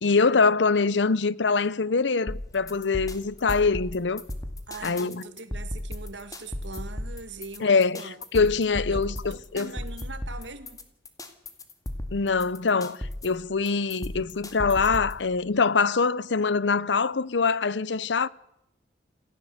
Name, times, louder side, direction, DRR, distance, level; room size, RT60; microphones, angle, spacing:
voice 1, 0.0-4.3 4.8-5.2 7.6-8.0 8.3-9.7 12.1-18.3, left 4 dB, 80° left, 0.8 m, -24 dB
sound 1, 2.3-15.2, left 1 dB, 20° left, 2.2 m, -36 dB
voice 2, 4.7-8.2 8.9-9.0 9.3-10.8, right 3 dB, 85° right, 2.2 m, -41 dB
28.0 x 15.0 x 8.0 m
head